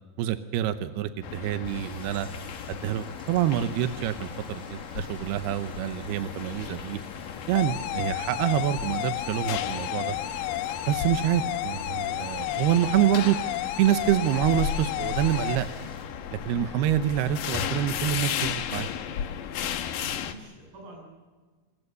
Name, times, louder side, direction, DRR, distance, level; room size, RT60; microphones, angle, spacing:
voice 1, 0.2-2.3 2.7-7.0 7.5-10.2 10.9-13.4 13.8-15.7 16.3-18.9, right 12 dB, 85° right, 9 dB, 2.9 m, -26 dB
sound 1, 1.2-20.3, left 8 dB, 65° left, 2.6 m, -35 dB
sound 2, 1.6-16.1, equal, 10° right, 4.2 m, -52 dB
sound 3, 7.6-15.6, left 14 dB, 90° left, 3.1 m, -32 dB
voice 2, 19.8-21.0, right 2 dB, 60° right, 1 dB, 9.9 m, -48 dB
27.0 x 20.5 x 6.8 m, 1.4 s
omnidirectional pair, 4.5 m